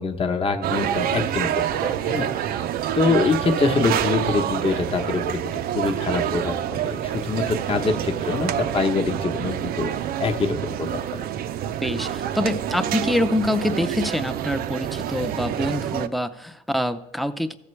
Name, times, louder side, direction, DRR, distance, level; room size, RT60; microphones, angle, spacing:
voice 1, 0.0-1.5 1.8-2.5 2.9-5.4 5.7-9.9 10.2-11.2, left 4 dB, 35° left, 4 dB, 0.9 m, -24 dB
sound 1, 0.6-16.1, right 10 dB, 60° right, 0.4 m, -27 dB
voice 2, 11.6-17.6, left 1 dB, ahead, 10 dB, 0.5 m, -25 dB
15.0 x 6.5 x 3.2 m, 0.86 s
cardioid pair, 110°, 17 cm